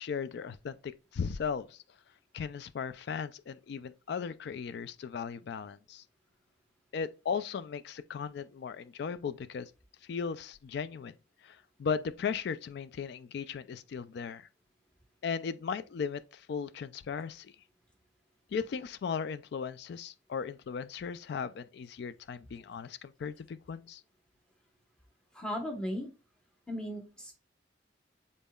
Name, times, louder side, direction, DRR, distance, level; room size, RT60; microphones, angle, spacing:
voice 1, 0.0-1.8 2.3-6.0 6.9-9.7 10.0-11.2 11.4-14.5 15.2-17.5 18.5-24.0, left 6 dB, 60° left, 0.3 m, -37 dB
voice 2, 25.3-26.1 26.7-27.3, equal, 5° left, 0.9 m, -36 dB
5.4 x 4.1 x 2.3 m
head